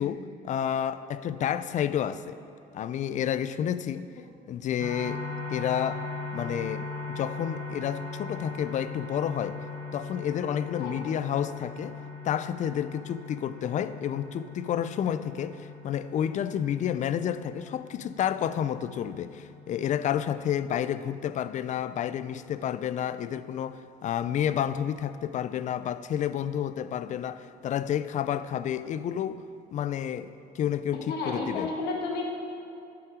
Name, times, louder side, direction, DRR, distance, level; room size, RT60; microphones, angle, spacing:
voice 1, 0.0-2.4 2.7-4.1 4.5-5.2 5.5-6.1 6.3-9.6 9.9-12.0 12.2-29.4 29.7-31.7, left 9 dB, 45° left, 13 dB, 0.4 m, -30 dB
sound 1, 4.8-22.5, left 3 dB, 70° right, 1.4 m, -40 dB
voice 2, 31.1-32.4, left 3 dB, 80° left, 0 dB, 1.3 m, -31 dB
11.0 x 5.8 x 4.9 m, 2.6 s
cardioid pair, 110°, 17 cm